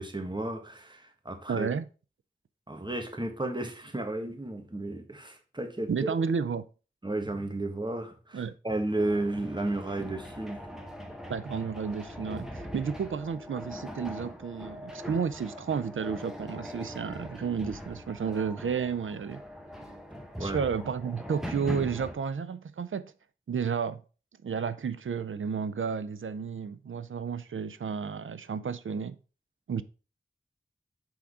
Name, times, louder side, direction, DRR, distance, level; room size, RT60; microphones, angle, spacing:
voice 1, 0.0-1.7 2.7-6.1 7.0-10.6 20.4-20.6, right 2 dB, 25° right, 1.3 m, -33 dB
voice 2, 1.5-1.9 5.9-6.6 8.3-8.6 11.3-19.4 20.4-23.1 23.5-24.0 24.4-29.2 29.7-29.8, right 6 dB, 90° right, 0.4 m, -32 dB
sound 1, 9.0-22.1, equal, 5° right, 1.1 m, -42 dB
6.0 x 3.6 x 4.8 m
wide cardioid pair, 45°, 20 cm